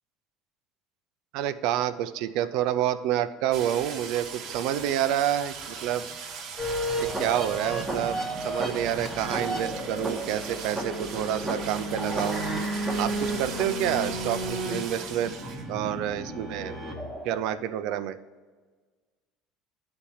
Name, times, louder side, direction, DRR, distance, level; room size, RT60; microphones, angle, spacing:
voice 1, 1.3-6.0 7.0-12.5 13.0-15.4 15.7-16.8 17.2-18.2, right 11 dB, 60° right, 12 dB, 0.4 m, -28 dB
sound 1, 3.5-15.7 16.0-16.1, right 6 dB, 45° right, 1.2 m, -40 dB
sound 2, 6.6-17.6, right 1 dB, ahead, 1.1 m, -32 dB
9.9 x 4.3 x 7.1 m, 1.4 s
cardioid pair, 165°, 0 cm